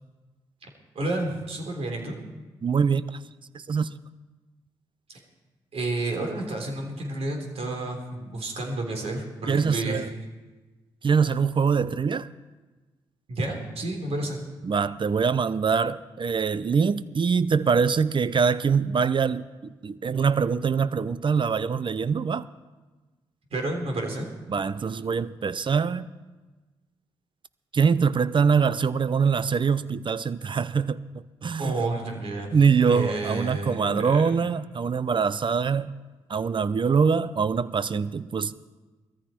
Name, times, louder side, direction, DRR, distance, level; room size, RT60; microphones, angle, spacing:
voice 1, 1.0-2.2 5.7-10.1 13.3-14.4 23.5-24.3 31.6-32.6 32.9-34.4, right 2 dB, 65° right, 3.6 m, -30 dB
voice 2, 2.6-3.2 3.5-3.9 9.5-10.1 11.0-12.3 14.6-22.5 24.5-26.1 27.7-31.8 32.5-35.9 36.3-38.6, right 6 dB, 45° right, 0.7 m, -24 dB
19.0 x 14.0 x 4.5 m
hypercardioid pair, 40°, 11 cm